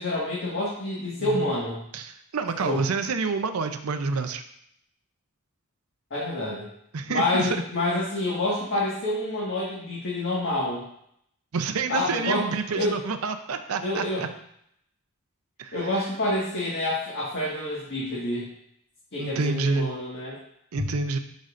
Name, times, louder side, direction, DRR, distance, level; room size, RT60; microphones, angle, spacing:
voice 1, 0.0-1.8 2.6-2.8 6.1-6.7 7.1-10.8 11.9-12.5 12.7-13.0 13.8-14.3 15.7-18.5 19.1-20.4 20.7-20.9, left 1 dB, 55° left, -6 dB, 1.8 m, -27 dB
voice 2, 1.9-4.4 6.9-7.6 11.5-14.1 15.6-15.9 19.2-19.9 20.7-21.2, right 4 dB, 85° right, 7 dB, 0.6 m, -28 dB
10.5 x 5.3 x 2.6 m, 0.72 s
head